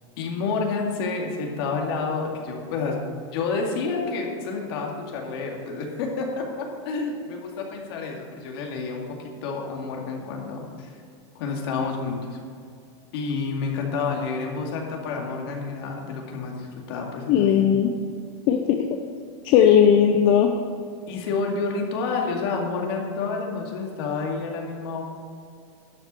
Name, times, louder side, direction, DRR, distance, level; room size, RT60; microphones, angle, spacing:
voice 1, 0.2-3.0 3.3-10.9 11.3-12.4 13.1-17.7 21.1-25.0, left 4 dB, 55° left, 0 dB, 2.2 m, -29 dB
voice 2, 17.3-17.9 18.5-19.0 19.4-20.5, left 8 dB, 35° left, 3 dB, 0.6 m, -17 dB
12.0 x 5.8 x 7.5 m, 2.3 s
supercardioid pair, 175°, 15 cm